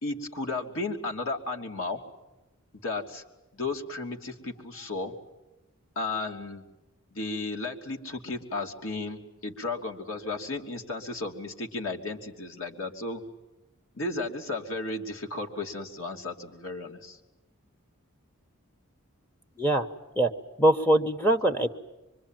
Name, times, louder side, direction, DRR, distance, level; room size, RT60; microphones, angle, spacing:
voice 1, 0.0-2.1 2.8-3.2 3.5-5.1 5.9-6.6 7.1-13.2 13.9-17.2, left 3 dB, 70° left, 2 dB, 3.0 m, -34 dB
voice 2, 20.6-21.7, right 1 dB, 10° left, 2 dB, 1.1 m, -22 dB
25.0 x 24.0 x 9.2 m, 1.0 s
head